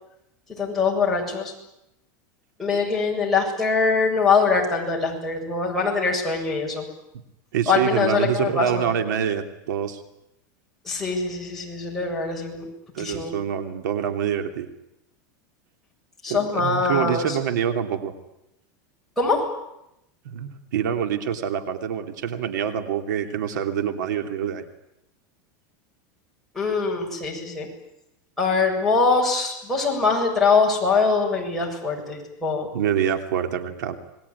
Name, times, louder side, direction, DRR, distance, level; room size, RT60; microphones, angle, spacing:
voice 1, 0.6-1.5 2.6-6.8 7.7-8.9 10.8-12.7 13.0-13.3 16.2-17.4 19.2-19.4 26.5-27.7 28.4-32.7, left 4 dB, 5° left, -4 dB, 7.5 m, -23 dB
voice 2, 7.5-10.0 12.9-14.7 16.3-18.1 20.2-24.6 32.7-34.0, right 8 dB, 90° right, 7 dB, 2.9 m, -26 dB
27.0 x 21.0 x 9.7 m, 0.84 s
supercardioid pair, 160°, 10 cm